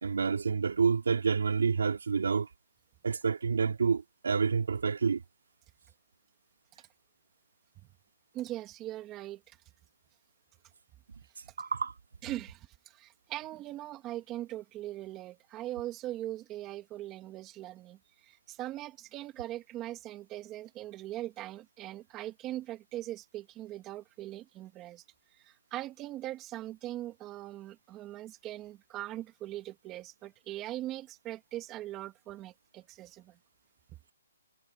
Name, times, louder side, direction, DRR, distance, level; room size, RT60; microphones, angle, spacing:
voice 1, 0.0-2.5 3.0-5.2 11.6-11.9, right 5 dB, 85° right, 3.0 m, -28 dB
voice 2, 8.3-9.6 12.2-25.0 25.3-33.4, right 14 dB, 15° right, 2.7 m, -41 dB
hypercardioid pair, 170°, 0 cm